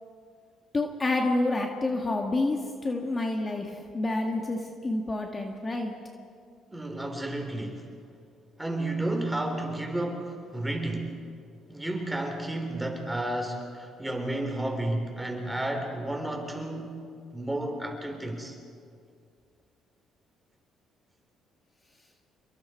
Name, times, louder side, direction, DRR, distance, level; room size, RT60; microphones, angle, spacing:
voice 1, 0.7-5.9, left 2 dB, 25° left, 2 dB, 2.0 m, -28 dB
voice 2, 6.7-7.8 8.6-11.2 11.7-17.0 17.3-18.6, right 1 dB, 10° right, 3 dB, 4.1 m, -32 dB
27.5 x 22.5 x 4.7 m, 2.3 s
cardioid pair, 85°, 0 cm